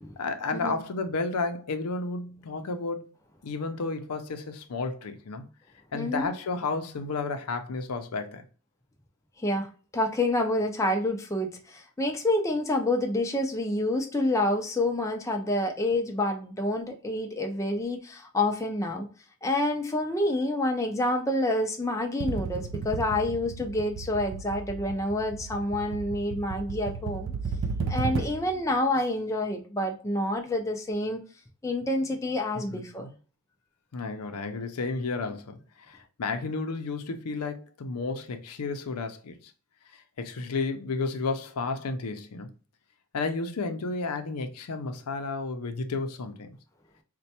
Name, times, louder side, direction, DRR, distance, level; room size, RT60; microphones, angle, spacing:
voice 1, 0.2-3.1 3.4-5.5 5.9-8.5 32.7-33.1 33.9-35.6 35.9-39.4 40.2-42.5 43.1-46.5, left 3 dB, 90° left, 0.5 m, -32 dB
voice 2, 5.9-6.3 9.4-19.1 19.4-27.3 27.9-31.2 31.6-33.1, left 1 dB, 15° left, 0.4 m, -28 dB
sound 1, 22.2-28.6, right 4 dB, 55° right, 0.3 m, -34 dB
4.2 x 2.2 x 2.7 m
head